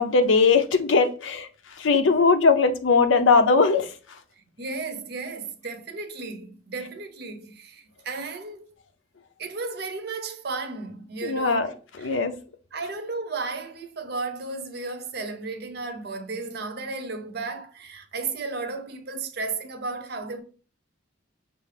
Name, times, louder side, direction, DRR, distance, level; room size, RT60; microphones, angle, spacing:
voice 1, 0.0-1.5 1.8-3.9 11.2-11.7 12.0-12.3, left 4 dB, 90° left, 0.6 m, -19 dB
voice 2, 4.6-8.7 9.4-12.2 12.7-20.4, right 3 dB, 55° right, 0.6 m, -34 dB
6.1 x 2.5 x 3.3 m
head